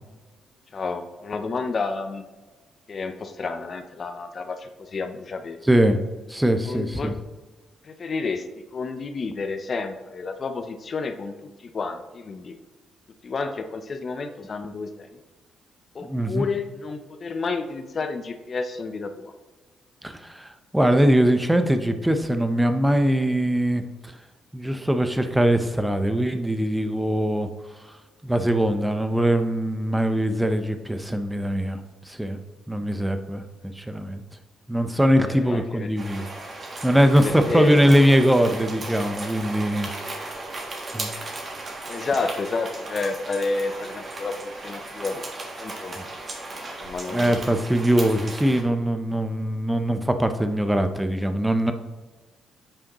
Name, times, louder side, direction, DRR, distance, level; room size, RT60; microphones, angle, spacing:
voice 1, 0.7-2.2 2.9-5.6 6.6-7.1 8.0-8.4 8.7-11.3 11.6-12.5 13.2-15.1 15.9-19.3 35.3-35.9 37.2-37.8 41.9-45.2 45.6-46.0 46.5-47.5, left 4 dB, 40° left, 7 dB, 0.6 m, -30 dB
voice 2, 5.6-6.0 6.3-7.1 16.0-16.4 20.0-23.8 24.5-27.5 28.2-31.8 32.1-32.4 32.7-34.2 34.7-36.3 36.8-39.9 40.9-41.1 46.0-46.1 47.1-51.7, equal, 10° right, 8 dB, 0.7 m, -22 dB
sound 1, 36.0-48.6, right 2 dB, 40° right, 1.5 m, -36 dB
8.6 x 4.9 x 3.0 m, 1.3 s
cardioid pair, 90°, 0 cm